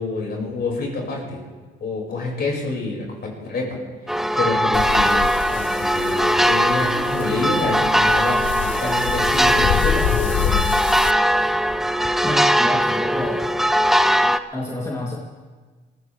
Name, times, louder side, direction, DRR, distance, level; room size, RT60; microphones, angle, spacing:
voice 1, 0.0-1.4 1.8-3.8 4.4-10.7, left 3 dB, 55° left, -2 dB, 5.9 m, -27 dB
sound 1, 4.1-14.4, equal, ahead, 0.6 m, -20 dB
sound 2, 4.7-11.1, left 11 dB, 70° left, 0.6 m, -27 dB
voice 2, 12.2-13.4 14.5-15.1, left 1 dB, 15° left, -5 dB, 3.1 m, -28 dB
22.5 x 15.5 x 3.5 m, 1.4 s
cardioid pair, 90°, 20 cm